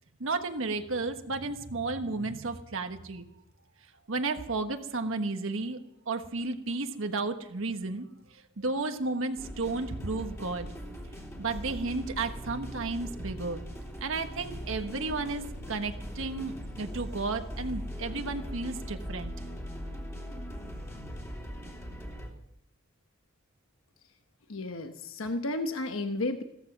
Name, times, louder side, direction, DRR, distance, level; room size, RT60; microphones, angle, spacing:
voice 1, 0.2-3.2 4.1-5.8 6.1-8.0 8.6-10.7 11.4-13.6 14.0-19.3, right 3 dB, 70° right, 6 dB, 1.4 m, -33 dB
sound 1, 9.4-22.3, equal, 15° left, 2.9 m, -40 dB
voice 2, 24.5-26.4, left 2 dB, 75° left, 7 dB, 1.1 m, -32 dB
15.5 x 14.5 x 6.0 m, 0.78 s
head